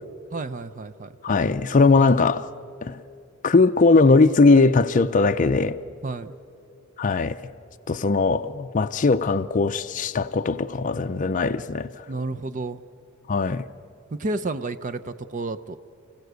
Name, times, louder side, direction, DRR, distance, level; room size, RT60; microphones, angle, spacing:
voice 1, 0.3-1.4 6.0-6.3 12.1-12.8 14.1-15.8, right 2 dB, 35° right, 0.6 m, -31 dB
voice 2, 1.2-2.5 2.8-3.0 3.4-5.8 7.0-7.4 7.9-11.9 13.3-13.6, left 3 dB, 35° left, 0.5 m, -19 dB
30.0 x 15.5 x 8.1 m
head